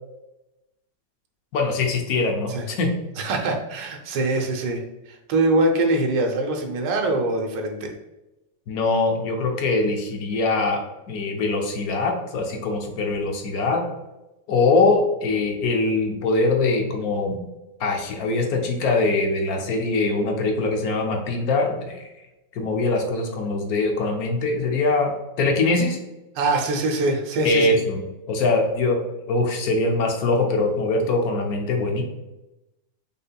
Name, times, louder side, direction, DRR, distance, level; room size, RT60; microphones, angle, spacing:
voice 1, 1.5-2.9 8.7-10.8 11.1-13.8 14.5-17.4 17.8-22.1 22.5-25.1 25.4-26.0 27.4-32.0, left 3 dB, 60° left, 2 dB, 1.1 m, -22 dB
voice 2, 3.2-7.9 26.3-27.8, right 2 dB, 85° right, 2 dB, 1.4 m, -23 dB
5.4 x 3.7 x 2.2 m, 1.0 s
omnidirectional pair, 1.9 m